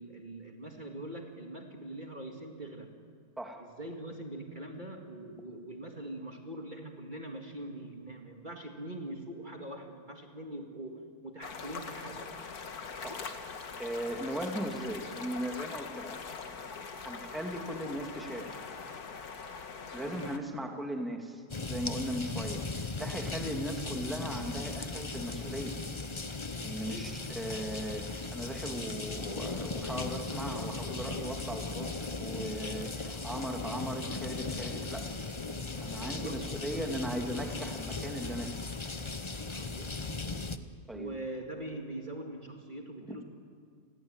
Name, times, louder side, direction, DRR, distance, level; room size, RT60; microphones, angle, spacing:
voice 1, 0.0-2.9 3.6-12.4 20.0-20.4 23.4-23.6 26.9-27.2 36.0-36.4 39.5-40.2 40.9-43.2, right 1 dB, 30° right, 2 dB, 2.2 m, -43 dB
sound 1, 11.4-20.4, left 5 dB, 75° left, 2.1 m, -42 dB
voice 2, 13.8-16.2 17.0-18.5 19.9-25.7 26.6-27.1 27.4-35.1 35.8-38.5 40.9-41.1 43.1-43.2, right 1 dB, ahead, 3 dB, 2.3 m, -38 dB
sound 2, 21.5-40.6, left 3 dB, 25° left, 0.8 m, -37 dB
29.5 x 21.5 x 8.9 m, 2.1 s
omnidirectional pair, 1.6 m